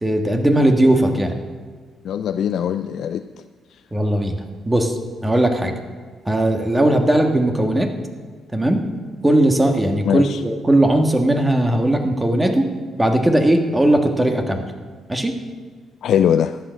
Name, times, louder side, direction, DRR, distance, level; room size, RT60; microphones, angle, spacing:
voice 1, 0.0-1.3 3.9-4.4 4.6-4.9 5.2-5.7 6.3-7.9 8.5-8.8 9.2-12.7 13.0-14.6 15.1-15.3, right 1 dB, 15° right, 5 dB, 1.7 m, -18 dB
voice 2, 2.0-3.2 10.1-10.4 16.0-16.6, left 9 dB, 70° left, 9 dB, 0.4 m, -20 dB
13.5 x 9.4 x 6.4 m, 1.5 s
cardioid pair, 90°, 0 cm